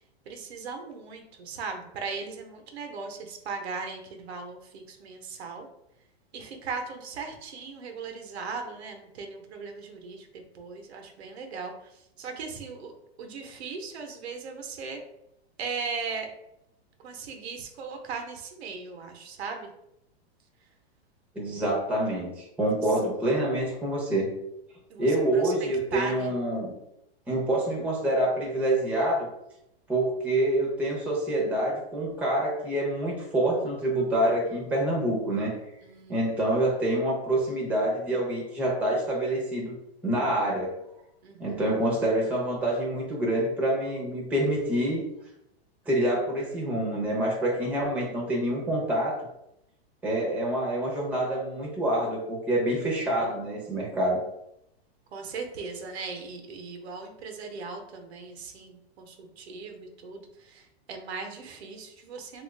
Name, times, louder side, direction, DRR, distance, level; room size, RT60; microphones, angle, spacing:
voice 1, 0.3-5.7 6.3-11.9 12.2-12.9 13.2-15.0 15.6-16.3 17.0-19.7 22.7-22.8 24.9-26.3 35.8-36.2 41.2-41.7 55.1-62.4, right 4 dB, 80° right, 4 dB, 0.8 m, -38 dB
voice 2, 21.3-24.3 25.0-26.7 27.3-29.3 29.9-35.5 36.1-39.7 40.0-40.7 41.4-45.0 45.9-49.3 50.0-54.2, right 1 dB, 5° right, -3 dB, 0.6 m, -26 dB
2.9 x 2.4 x 3.2 m, 0.82 s
hypercardioid pair, 140°, 32 cm